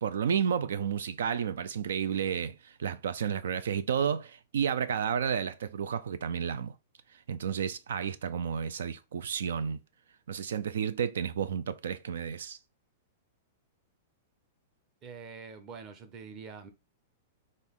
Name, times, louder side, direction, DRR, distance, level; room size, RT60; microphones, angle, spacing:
voice 1, 0.0-6.7 7.3-9.8 10.3-12.6, right 7 dB, 85° right, 0.4 m, -31 dB
voice 2, 15.0-16.7, right 5 dB, 25° right, 0.8 m, -45 dB
6.0 x 2.5 x 3.6 m
supercardioid pair, 160°, 0 cm